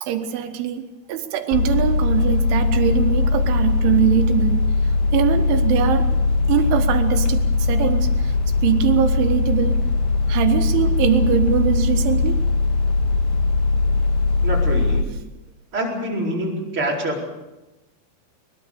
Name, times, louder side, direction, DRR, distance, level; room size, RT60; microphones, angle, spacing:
voice 1, 0.0-4.6 5.1-6.1 6.5-8.3 8.6-9.8 10.3-12.4, right 9 dB, 80° right, 7 dB, 3.8 m, -22 dB
sound 1, 1.5-15.0, left 3 dB, 75° left, 3.4 m, -20 dB
voice 2, 14.4-15.1 15.7-17.3, right 1 dB, 30° right, -2 dB, 5.0 m, -25 dB
22.5 x 21.0 x 6.8 m, 1.0 s
omnidirectional pair, 5.4 m